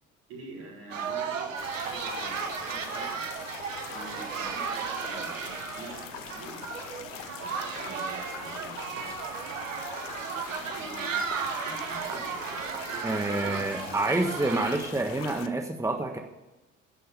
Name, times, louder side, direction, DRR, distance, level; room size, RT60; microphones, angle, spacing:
voice 1, 0.3-3.2 3.9-6.7 7.4-9.2 10.2-13.7 14.0-14.2, right 1 dB, 75° right, -5 dB, 5.0 m, -47 dB
sound 1, 0.9-14.8, right 6 dB, 90° right, 0.9 m, -35 dB
sound 2, 1.6-15.5, left 12 dB, 75° left, 0.8 m, -43 dB
voice 2, 13.0-16.2, right 2 dB, 10° right, 4 dB, 1.4 m, -28 dB
12.0 x 6.5 x 8.2 m, 1.1 s
figure-of-eight pair, 50°, 38 cm